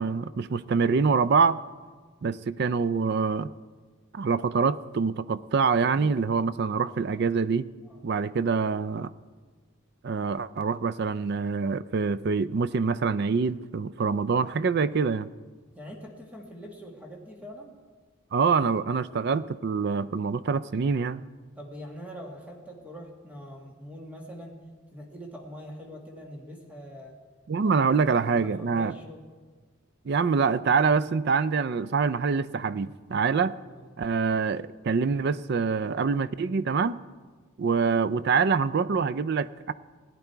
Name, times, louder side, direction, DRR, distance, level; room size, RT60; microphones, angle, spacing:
voice 1, 0.0-1.6 2.2-3.5 4.1-7.7 8.0-9.1 10.0-15.3 18.3-21.2 27.5-28.9 30.1-33.6 34.0-37.0 37.6-39.7, right 5 dB, 50° right, 16 dB, 0.4 m, -25 dB
voice 2, 5.8-6.2 7.8-8.1 15.7-17.7 21.6-27.1 27.6-27.7 28.0-28.2 28.4-29.2 33.7-33.9, equal, 5° right, 0 dB, 1.7 m, -43 dB
17.5 x 9.8 x 4.5 m, 1.4 s
head